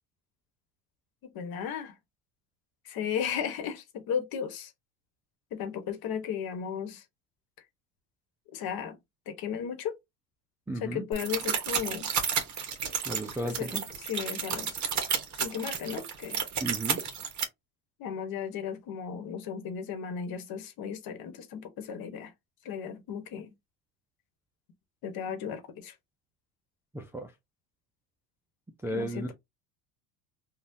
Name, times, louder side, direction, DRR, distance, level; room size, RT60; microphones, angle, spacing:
voice 1, 1.2-1.9 2.8-4.7 5.5-7.0 8.5-9.0 9.3-9.9 10.8-12.1 13.4-13.7 14.1-14.9 15.4-16.4 18.0-22.3 22.6-23.5 25.0-25.9 28.9-29.3, left 8 dB, 55° left, 1.2 m, -35 dB
voice 2, 10.7-11.0 13.1-13.9 16.6-17.0 26.9-27.3 28.8-29.3, right 1 dB, 5° right, 0.3 m, -34 dB
sound 1, 11.1-17.4, right 7 dB, 40° right, 1.1 m, -31 dB
3.6 x 2.4 x 2.6 m
supercardioid pair, 100°, 45 cm